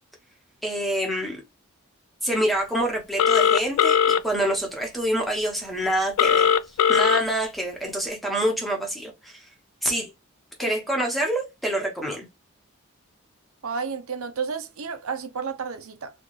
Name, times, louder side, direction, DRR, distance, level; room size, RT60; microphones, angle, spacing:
voice 1, 0.6-1.4 2.2-6.5 6.9-9.4 9.8-10.1 10.6-12.3, right 1 dB, ahead, 0.9 m, -26 dB
Telephone, 3.2-4.2 6.2-7.2, left 8 dB, 80° left, 0.3 m, -19 dB
voice 2, 13.6-16.1, right 5 dB, 75° right, 0.6 m, -31 dB
4.2 x 2.3 x 3.1 m
head